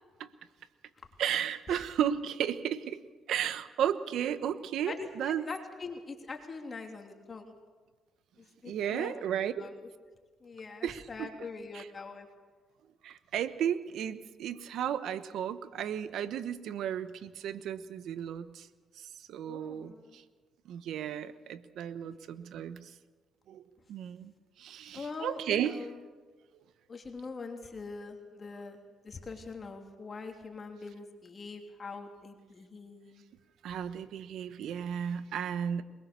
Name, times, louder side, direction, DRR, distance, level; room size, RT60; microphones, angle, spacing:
voice 1, 1.2-3.0 3.3-5.4 8.7-9.5 10.8-11.3 11.7-11.9 13.0-18.7 19.3-20.2 20.6-22.9 23.5-23.6 23.9-24.3 24.6-25.7 33.6-35.8, right 9 dB, 75° right, 13 dB, 1.1 m, -34 dB
voice 2, 4.9-7.5 8.6-9.1 9.6-9.9 10.4-12.3 19.5-20.2 22.0-22.2 24.9-26.1 26.9-28.8 29.0-33.2, left 4 dB, 35° left, 3 dB, 3.0 m, -43 dB
22.5 x 20.5 x 6.9 m, 1.4 s
cardioid pair, 90°, 0 cm